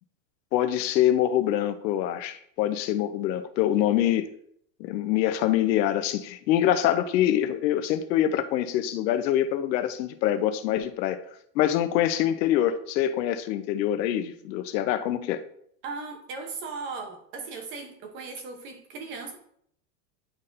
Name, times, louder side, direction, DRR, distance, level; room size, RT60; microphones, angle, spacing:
voice 1, 0.5-4.3 4.8-11.2 11.5-15.4, left 11 dB, 85° left, 0.9 m, -25 dB
voice 2, 15.8-19.4, right 4 dB, 25° right, 0.8 m, -37 dB
10.5 x 4.2 x 2.6 m
supercardioid pair, 175°, 50 cm